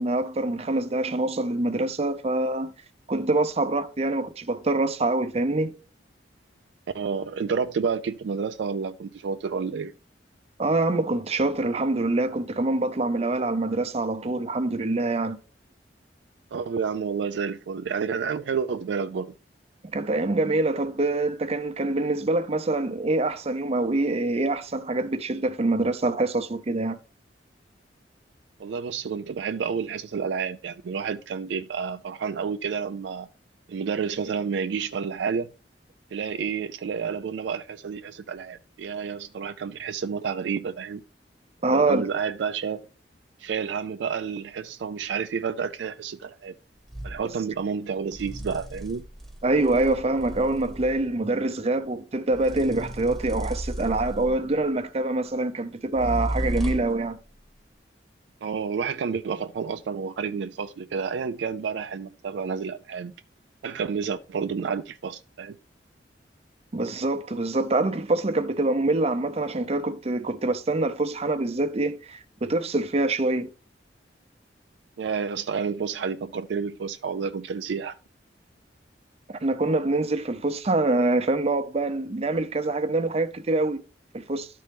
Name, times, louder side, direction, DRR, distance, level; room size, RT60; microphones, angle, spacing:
voice 1, 0.0-2.7 3.1-5.7 10.6-15.4 19.9-27.0 41.6-42.0 49.4-57.2 66.7-73.5 79.3-83.8 84.1-84.5, right 2 dB, 35° right, 0.6 m, -25 dB
voice 2, 6.9-9.9 16.5-19.3 28.6-33.3 33.7-35.5 36.1-41.0 41.7-42.8 43.4-46.5 47.0-49.1 58.4-63.1 63.6-65.6 75.0-78.0, right 6 dB, 75° right, 0.4 m, -30 dB
sound 1, 46.9-47.2 48.1-51.1 52.3-54.6 55.9-57.0, right 1 dB, ahead, 1.0 m, -34 dB
12.5 x 4.2 x 3.4 m
head